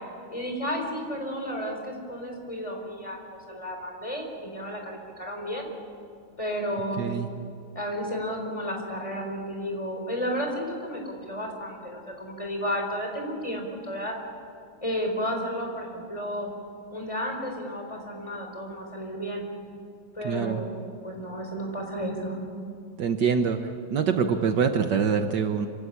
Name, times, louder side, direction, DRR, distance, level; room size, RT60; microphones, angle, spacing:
voice 1, 0.3-3.2 3.5-5.7 6.4-7.1 7.7-14.1 14.8-16.5 16.9-19.4 20.1-20.7 21.0-22.4, equal, 15° left, 2 dB, 4.3 m, -32 dB
voice 2, 7.0-7.3 20.2-20.6 23.0-23.6 23.9-25.7, right 6 dB, 65° right, 6 dB, 1.6 m, -24 dB
26.0 x 17.0 x 9.9 m, 2.3 s
omnidirectional pair, 2.1 m